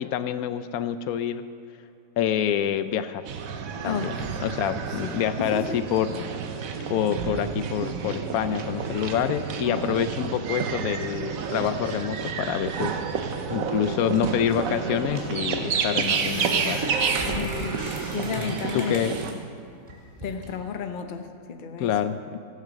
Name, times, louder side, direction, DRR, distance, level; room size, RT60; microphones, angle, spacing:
voice 1, 0.0-1.4 2.2-3.3 3.8-4.1 4.4-6.3 6.9-13.0 13.5-17.0 17.3-17.7 18.5-19.2 21.8-22.2, left 9 dB, 80° left, 12 dB, 1.0 m, -27 dB
sound 1, 3.3-19.3, right 6 dB, 75° right, 1.3 m, -30 dB
voice 2, 3.8-4.2 5.0-5.1 5.4-5.8 9.7-10.0 17.1-17.8 18.1-19.1 20.2-21.9, left 5 dB, 45° left, 7 dB, 0.8 m, -32 dB
sound 2, 14.5-14.6 15.2-15.4 15.7-19.3 19.9-20.5, right 1 dB, 25° right, 2.2 m, -38 dB
16.0 x 9.0 x 6.3 m, 2.6 s
omnidirectional pair, 1.5 m